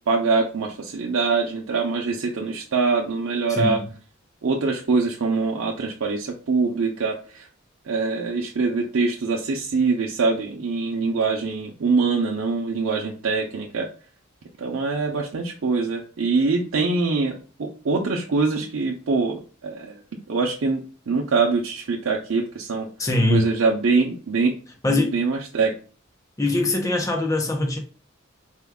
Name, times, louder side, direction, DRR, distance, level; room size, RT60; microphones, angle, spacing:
voice 1, 0.1-3.8 4.4-7.5 7.8-13.9 14.6-20.0 20.3-20.8 21.1-22.9 23.3-24.6 24.9-25.7, right 4 dB, 90° right, 0.6 m, -23 dB
voice 2, 3.5-3.9 23.0-23.5 24.8-25.2 26.4-27.8, left 2 dB, 15° left, 0.6 m, -22 dB
4.4 x 2.3 x 3.5 m
head